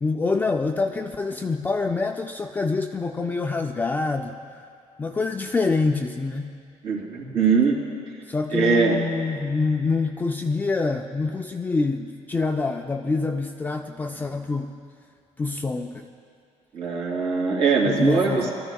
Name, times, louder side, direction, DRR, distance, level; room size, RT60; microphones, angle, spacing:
voice 1, 0.0-4.4 5.0-6.5 8.3-14.7 15.4-16.1 17.8-18.5, left 3 dB, 15° left, 3 dB, 0.4 m, -26 dB
voice 2, 6.8-7.8 8.5-9.0 16.7-18.5, right 5 dB, 50° right, -3 dB, 3.1 m, -21 dB
22.0 x 13.5 x 2.3 m, 2.4 s
cardioid pair, 150°, 13 cm